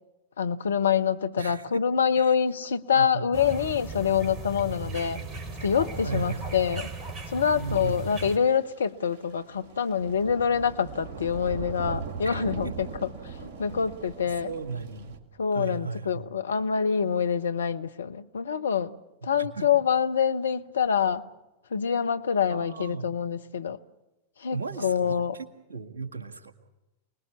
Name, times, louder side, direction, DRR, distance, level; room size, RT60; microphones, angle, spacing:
voice 1, 0.4-5.2 5.6-6.9 7.3-13.1 13.4-14.5 15.4-19.0 19.2-21.2 21.7-23.8 24.4-25.4, left 7 dB, 70° left, 0.9 m, -26 dB
voice 2, 2.9-3.3 6.0-6.5 7.6-8.3 12.2-12.7 14.3-15.2 15.5-16.3 19.2-19.7 22.5-23.1 24.5-26.5, right 5 dB, 70° right, 1.9 m, -36 dB
sound 1, 3.3-8.4, right 3 dB, 25° right, 2.8 m, -37 dB
sound 2, 5.0-5.5 5.8-6.7 7.2-7.3 7.5-7.6 7.9-8.0 8.3-8.8 9.1-15.2, right 5 dB, 45° right, 2.4 m, -40 dB
28.5 x 20.5 x 7.1 m
figure-of-eight pair, 90°, 0 cm